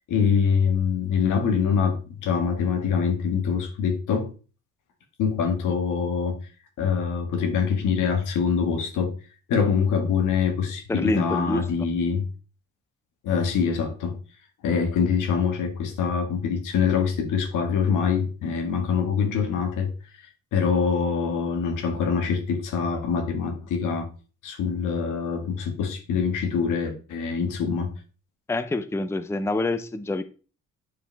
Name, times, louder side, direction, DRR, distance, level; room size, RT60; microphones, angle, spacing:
voice 1, 0.1-4.3 5.2-6.5 6.8-9.2 9.5-12.3 13.2-14.2 14.6-19.9 20.5-24.1 24.4-28.0, left 6 dB, 90° left, 1.8 m, -24 dB
voice 2, 10.9-11.7 28.5-30.2, left 2 dB, 10° left, 0.6 m, -26 dB
8.5 x 4.9 x 3.4 m
cardioid pair, 90°, 30 cm